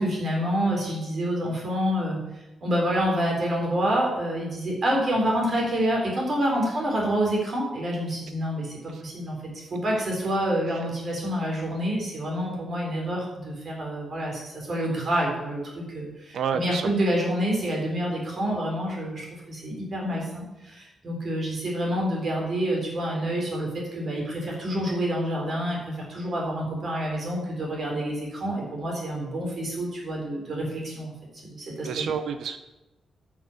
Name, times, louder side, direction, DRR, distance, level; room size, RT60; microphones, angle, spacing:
voice 1, 0.0-2.2 2.6-31.1 31.4-32.1, equal, 40° right, -2 dB, 3.8 m, -27 dB
voice 2, 16.3-16.9 31.8-32.6, right 6 dB, 90° right, 9 dB, 0.8 m, -29 dB
10.0 x 6.4 x 7.2 m, 0.99 s
wide cardioid pair, 155°, 0 cm